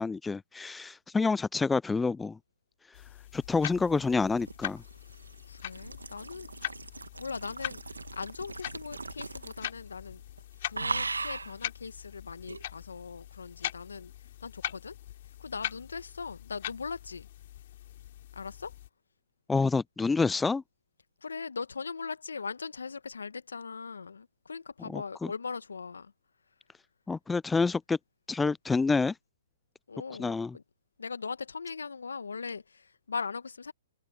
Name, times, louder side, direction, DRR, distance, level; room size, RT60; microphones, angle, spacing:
voice 1, 0.0-2.4 3.3-4.8 19.5-20.6 24.9-25.0 27.1-28.0 28.3-29.1 30.2-30.5, left 4 dB, 10° left, 0.3 m, -28 dB
sound 1, 2.9-18.9, left 13 dB, 50° left, 3.6 m, -42 dB
sound 2, 4.1-9.9 10.1-10.4 10.7-11.6 12.5-12.6, right 3 dB, 90° right, 1.9 m, -38 dB
voice 2, 5.5-6.5 7.2-7.8 8.1-10.2 10.6-15.0 15.3-17.3 18.3-18.8 21.2-26.1 29.9-30.6 31.0-33.7, left 5 dB, 80° left, 1.5 m, -40 dB
hypercardioid pair, 125°, 0 cm